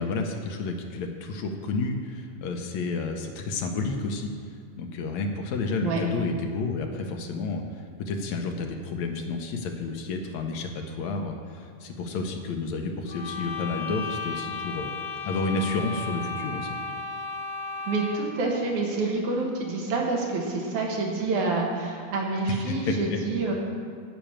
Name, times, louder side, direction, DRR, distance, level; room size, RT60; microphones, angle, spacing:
voice 1, 0.0-4.3 4.8-14.9 15.3-16.8 22.5-23.2, left 3 dB, 75° left, 3 dB, 2.0 m, -30 dB
sound 1, 13.1-18.4, left 4 dB, 45° left, 1.4 m, -34 dB
voice 2, 17.8-23.5, right 3 dB, 75° right, -1 dB, 2.9 m, -27 dB
10.0 x 6.2 x 8.7 m, 2.3 s
omnidirectional pair, 3.5 m